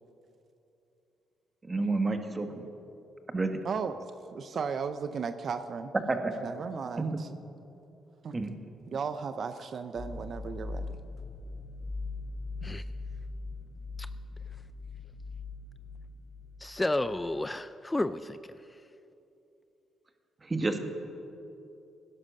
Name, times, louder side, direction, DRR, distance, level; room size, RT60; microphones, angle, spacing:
voice 1, 1.6-2.6 3.3-3.6 6.1-6.3 8.3-8.5 20.5-20.8, right 3 dB, 25° right, 6 dB, 1.5 m, -29 dB
voice 2, 3.6-4.0 4.3-5.9 6.4-7.3 8.2-8.3 8.9-10.9, right 6 dB, 55° right, 10 dB, 0.5 m, -35 dB
sound 1, 9.9-17.1, left 3 dB, 35° left, 4.1 m, -40 dB
voice 3, 16.6-18.6, left 2 dB, 15° left, 13 dB, 0.4 m, -31 dB
17.0 x 10.5 x 6.5 m, 2.8 s
cardioid pair, 90°, 0 cm